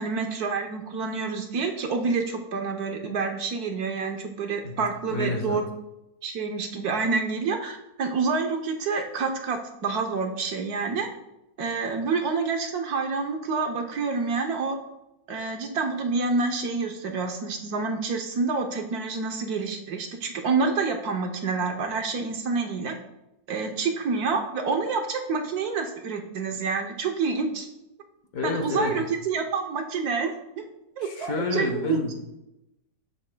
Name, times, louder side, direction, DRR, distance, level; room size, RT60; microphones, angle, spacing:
voice 1, 0.0-5.7 6.2-11.1 11.6-14.8 15.3-23.0 23.5-27.7 28.4-30.6 31.0-32.0, right 4 dB, 65° right, 4 dB, 1.3 m, -28 dB
voice 2, 4.6-5.6 28.3-29.1 31.0-32.2, left 3 dB, 55° left, 4 dB, 1.4 m, -30 dB
11.5 x 8.2 x 2.2 m, 0.92 s
omnidirectional pair, 1.9 m